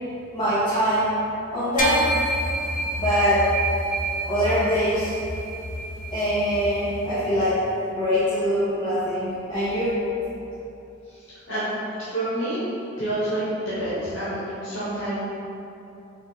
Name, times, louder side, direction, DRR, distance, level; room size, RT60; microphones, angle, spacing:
voice 1, 0.3-1.1 1.5-2.0 3.0-3.4 4.3-5.1 6.1-7.6 7.9-9.9, equal, 20° left, -13 dB, 0.9 m, -23 dB
sound 1, 1.8-7.4, right 1 dB, 45° left, 0.4 m, -28 dB
voice 2, 12.1-12.6 13.0-15.2, right 1 dB, 80° left, -11 dB, 1.1 m, -28 dB
4.2 x 2.4 x 4.0 m, 2.8 s
head